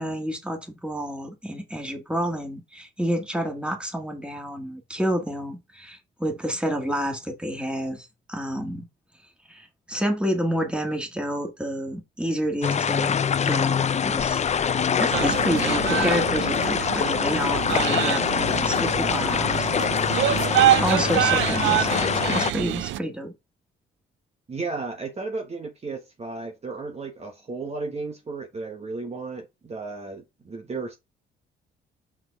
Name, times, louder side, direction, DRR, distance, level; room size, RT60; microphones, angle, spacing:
voice 1, 0.0-8.9 9.5-13.1 13.4-19.9 20.8-23.3, equal, 5° right, 2.0 m, -29 dB
sound 1, 12.6-22.5, left 7 dB, 35° left, 0.5 m, -24 dB
sound 2, 15.1-23.0, right 14 dB, 75° right, 0.4 m, -26 dB
voice 2, 24.5-31.0, right 3 dB, 30° right, 1.2 m, -34 dB
5.9 x 4.9 x 3.6 m
cardioid pair, 90°, 20 cm